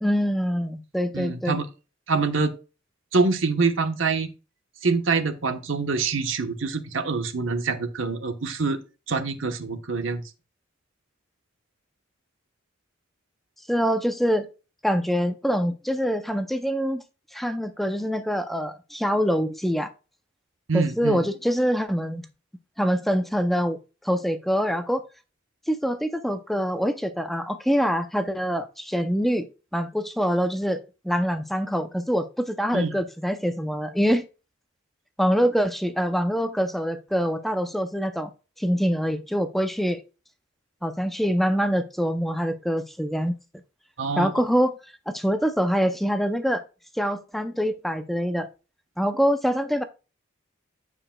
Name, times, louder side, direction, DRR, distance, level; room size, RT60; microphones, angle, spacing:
voice 1, 0.0-1.6 13.7-14.5 14.8-17.0 17.3-19.9 20.7-22.3 22.8-23.8 24.0-25.1 25.7-29.5 29.7-34.3 35.2-38.3 38.6-40.0 40.8-43.4 44.2-44.7 45.1-46.6 46.9-48.5 49.0-49.8, equal, ahead, 0.5 m, -25 dB
voice 2, 1.1-1.7 2.1-2.5 3.1-4.3 4.8-8.8 9.1-10.2 20.7-21.2 32.7-32.9 44.0-44.3, right 4 dB, 75° right, 1.0 m, -25 dB
14.5 x 4.9 x 2.2 m
head